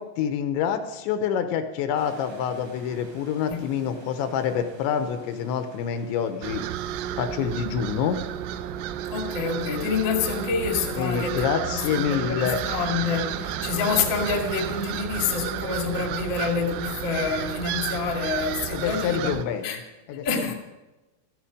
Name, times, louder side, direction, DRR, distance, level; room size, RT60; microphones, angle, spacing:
voice 1, 0.0-6.6 7.2-8.2 11.0-12.6 18.7-19.8 20.1-20.5, left 8 dB, 80° left, 8 dB, 3.1 m, -27 dB
sound 1, 2.0-19.7, right 3 dB, 60° right, 4.8 m, -46 dB
sound 2, 6.4-19.4, right 11 dB, 85° right, 3.2 m, -32 dB
voice 2, 9.1-19.4 19.6-19.8 20.2-20.5, left 5 dB, 45° left, 2 dB, 1.5 m, -27 dB
14.5 x 14.0 x 5.0 m, 1.1 s
omnidirectional pair, 5.5 m